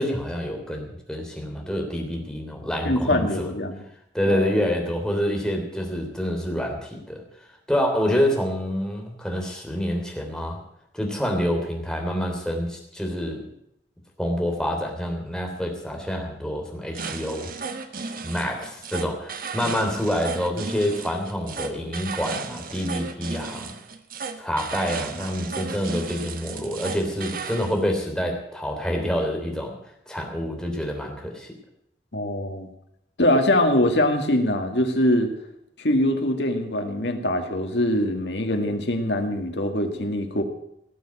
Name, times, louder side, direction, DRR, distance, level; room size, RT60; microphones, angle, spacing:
voice 1, 0.0-3.5 4.1-7.2 7.7-10.6 10.9-13.4 14.2-17.5 18.2-23.7 24.4-29.7 30.1-31.5, equal, 5° left, 1 dB, 3.1 m, -27 dB
voice 2, 2.8-3.8 4.3-4.5 32.1-32.7 33.2-35.3 35.8-40.4, left 1 dB, 75° left, 4 dB, 2.1 m, -23 dB
sound 1, 16.9-27.8, right 4 dB, 55° right, 1.3 m, -34 dB
18.0 x 7.2 x 8.8 m, 0.77 s
head